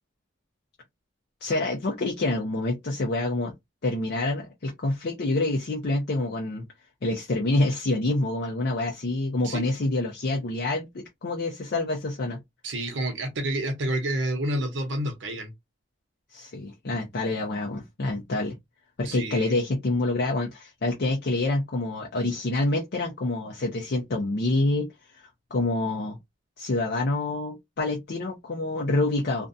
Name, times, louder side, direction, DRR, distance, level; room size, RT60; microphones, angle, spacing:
voice 1, 1.4-3.5 3.8-6.6 7.0-12.4 16.3-18.5 19.0-24.9 25.1-25.2 25.5-26.2 26.6-29.5, left 2 dB, 60° left, 0.5 m, -27 dB
voice 2, 12.6-15.5 19.0-19.6, right 1 dB, 85° right, 0.8 m, -29 dB
2.5 x 2.2 x 2.6 m
head